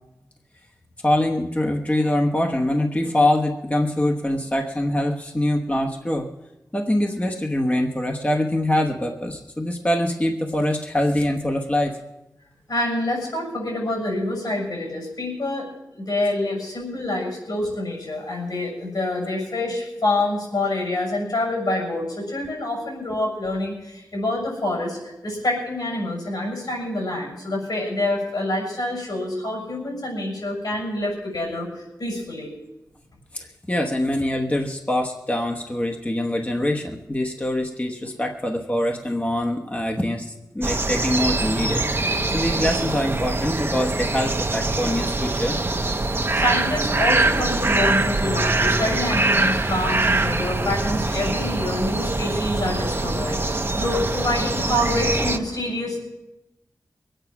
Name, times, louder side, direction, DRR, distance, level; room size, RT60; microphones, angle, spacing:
voice 1, 1.0-6.3 6.7-12.0 33.3-45.6, left 1 dB, 20° left, 1 dB, 1.1 m, -24 dB
voice 2, 12.7-15.7 15.9-32.5 46.3-56.0, left 1 dB, 75° left, 0 dB, 6.5 m, -26 dB
sound 1, 40.6-55.4, right 2 dB, 35° right, 0.9 m, -23 dB
22.0 x 9.1 x 5.9 m, 0.98 s
wide cardioid pair, 65°, 7 cm